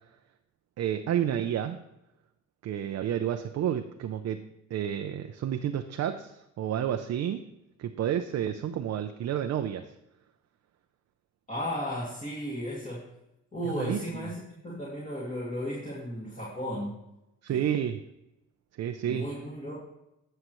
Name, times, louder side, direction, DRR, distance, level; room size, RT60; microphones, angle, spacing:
voice 1, 0.8-1.8 2.6-4.4 4.7-7.5 7.8-9.9 13.7-14.3 17.4-18.0 18.8-19.3, right 10 dB, 60° right, 7 dB, 0.5 m, -30 dB
voice 2, 11.5-13.1 13.5-17.0 17.5-17.7 19.0-19.8, equal, 25° left, -6 dB, 2.3 m, -35 dB
11.5 x 6.7 x 3.0 m, 0.88 s
cardioid pair, 90°, 30 cm